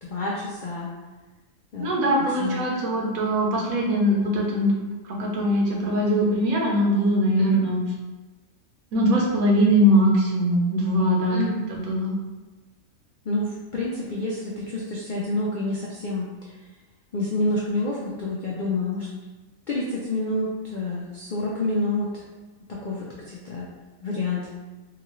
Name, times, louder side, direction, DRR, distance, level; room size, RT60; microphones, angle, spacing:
voice 1, 0.0-0.9 1.7-2.0 2.4-2.8 7.4-7.6 11.3-11.7 13.2-16.7 17.1-19.1 19.7-22.2 22.7-23.7 24.0-24.5, left 2 dB, 80° left, -4 dB, 0.4 m, -28 dB
voice 2, 1.8-4.7 5.0-7.8 8.9-11.4 11.7-12.1, equal, 80° right, -2 dB, 1.2 m, -21 dB
3.8 x 2.4 x 3.0 m, 1.2 s
omnidirectional pair, 1.5 m